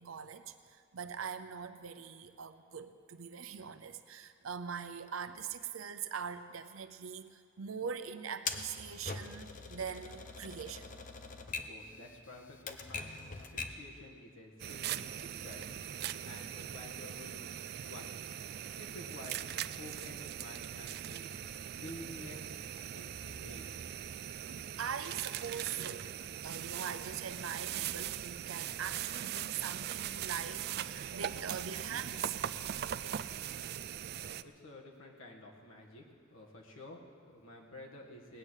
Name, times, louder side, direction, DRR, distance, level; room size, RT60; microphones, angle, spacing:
voice 1, 0.0-10.9 13.5-13.6 14.9-15.0 16.3-16.4 24.5-32.4, right 7 dB, 90° right, 10 dB, 0.7 m, -42 dB
Typewriter, 8.5-13.9, left 4 dB, 40° left, 0.8 m, -43 dB
voice 2, 11.6-15.7 16.0-18.2 18.8-21.4 21.8-23.8 34.2-38.4, left 1 dB, 85° left, -1 dB, 1.9 m, -51 dB
sound 1, 14.6-34.4, right 10 dB, 50° right, 0.3 m, -40 dB
19.0 x 6.5 x 8.9 m, 2.2 s
head